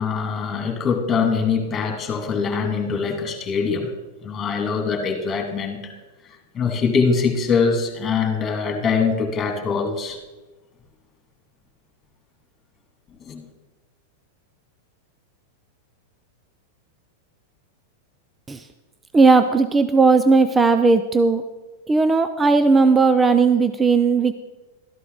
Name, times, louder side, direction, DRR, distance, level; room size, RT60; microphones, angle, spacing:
voice 1, 0.0-3.9 4.2-5.9 6.5-10.2 13.3-13.4, left 5 dB, 25° left, 3 dB, 2.5 m, -23 dB
voice 2, 19.1-21.4 21.9-24.3, right 4 dB, 15° right, 10 dB, 0.5 m, -16 dB
13.0 x 11.0 x 4.0 m, 1.2 s
hypercardioid pair, 120°, 0 cm